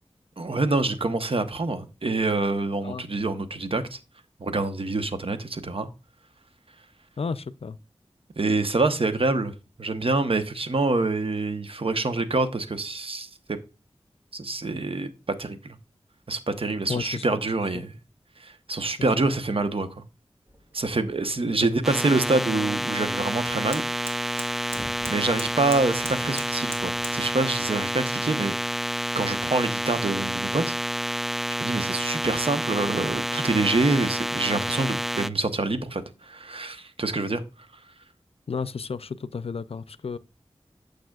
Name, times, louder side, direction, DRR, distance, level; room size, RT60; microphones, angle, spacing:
voice 1, 0.4-4.0 4.4-5.9 8.4-13.3 14.3-15.1 15.4-15.8 16.3-18.0 18.4-20.0 20.7-23.8 25.1-28.6 29.1-30.8 31.6-37.4, right 3 dB, 60° right, 1.0 m, -26 dB
voice 2, 7.2-7.8 16.9-17.2 21.6-21.7 38.5-40.2, left 5 dB, 70° left, 0.5 m, -32 dB
sound 1, 20.5-27.2, right 1 dB, 25° right, 2.1 m, -43 dB
sound 2, 21.8-35.3, equal, 5° right, 0.4 m, -29 dB
8.9 x 6.5 x 2.4 m
wide cardioid pair, 50°, 10 cm